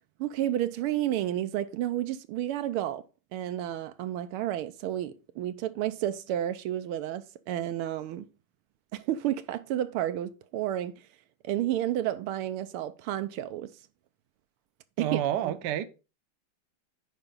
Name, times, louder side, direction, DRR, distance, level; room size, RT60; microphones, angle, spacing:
voice 1, 0.2-3.0 3.3-8.3 8.9-11.0 11.4-13.7 15.0-15.5, right 12 dB, 85° right, 1.6 m, -31 dB
voice 2, 15.0-15.8, right 11 dB, 65° right, 1.2 m, -29 dB
9.3 x 4.9 x 3.9 m
omnidirectional pair, 2.4 m